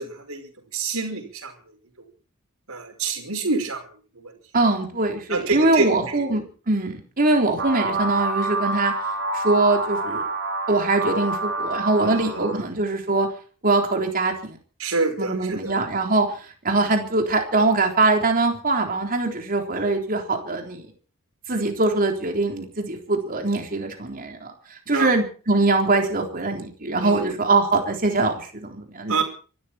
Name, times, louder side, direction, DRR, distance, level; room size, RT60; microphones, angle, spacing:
voice 1, 0.0-1.5 2.7-3.8 4.2-4.3 5.3-6.4 12.0-12.5 14.8-15.8 24.9-25.1 27.0-27.3 29.1-29.2, right 3 dB, 75° right, 4 dB, 5.5 m, -27 dB
voice 2, 4.5-8.9 9.3-10.2 10.7-13.3 13.6-14.6 15.2-16.3 16.6-20.9 21.5-24.5 24.9-29.2, right 2 dB, 40° right, 3 dB, 3.7 m, -22 dB
sound 1, 7.6-12.7, right 2 dB, 55° right, 4.7 m, -27 dB
25.0 x 13.0 x 4.4 m, 0.39 s
head